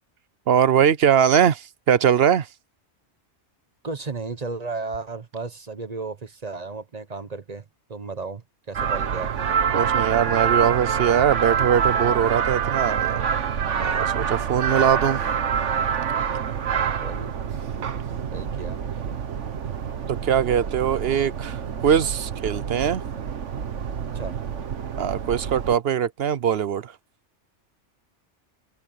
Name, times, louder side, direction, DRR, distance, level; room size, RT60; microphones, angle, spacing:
voice 1, 0.5-2.5 9.7-13.3 13.8-15.2 20.1-23.0 25.0-26.9, right 8 dB, 65° right, 0.9 m, -21 dB
voice 2, 3.8-9.3 16.7-17.3 18.3-18.8 24.1-24.4, right 4 dB, 35° right, 1.0 m, -34 dB
sound 1, 8.7-25.8, right 7 dB, 85° right, 1.4 m, -26 dB
omnidirectional pair, 1.2 m